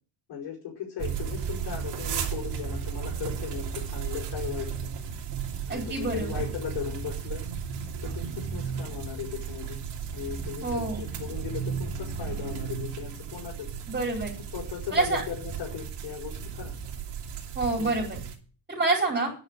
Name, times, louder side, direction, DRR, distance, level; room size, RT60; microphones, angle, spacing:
voice 1, 0.3-4.9 5.7-7.4 8.0-9.8 10.1-13.8 14.5-16.7 17.7-17.9, left 9 dB, 75° left, -2 dB, 5.2 m, -37 dB
sound 1, 1.0-18.4, right 7 dB, 70° right, 2.9 m, -34 dB
voice 2, 5.7-6.4 10.6-11.0 13.9-14.3 14.9-15.2 17.5-18.2 18.7-19.3, right 3 dB, 20° right, -1 dB, 4.5 m, -27 dB
10.0 x 6.9 x 8.9 m, 0.38 s
cardioid pair, 150°, 43 cm